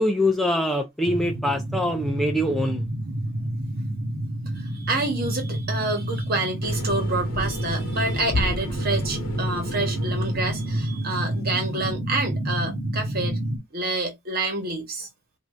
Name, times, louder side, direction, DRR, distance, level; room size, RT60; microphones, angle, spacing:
voice 1, 0.0-2.9, left 1 dB, ahead, 0.4 m, -24 dB
sound 1, 1.1-13.6, right 1 dB, 85° right, 1.2 m, -29 dB
voice 2, 4.5-13.4 13.7-15.1, right 2 dB, 45° right, 1.2 m, -28 dB
sound 2, 6.6-11.2, left 2 dB, 65° left, 1.0 m, -33 dB
3.3 x 2.6 x 2.4 m
head